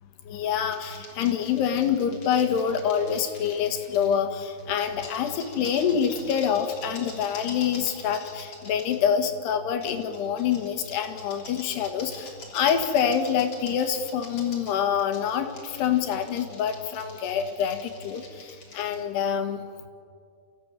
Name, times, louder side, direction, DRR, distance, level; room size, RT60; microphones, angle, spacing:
voice 1, 0.3-19.7, left 8 dB, 85° left, 6 dB, 3.7 m, -26 dB
sound 1, 0.7-4.2 4.6-9.0 9.8-19.0, left 3 dB, 30° left, 3.8 m, -45 dB
29.0 x 16.0 x 8.6 m, 2.3 s
omnidirectional pair, 4.7 m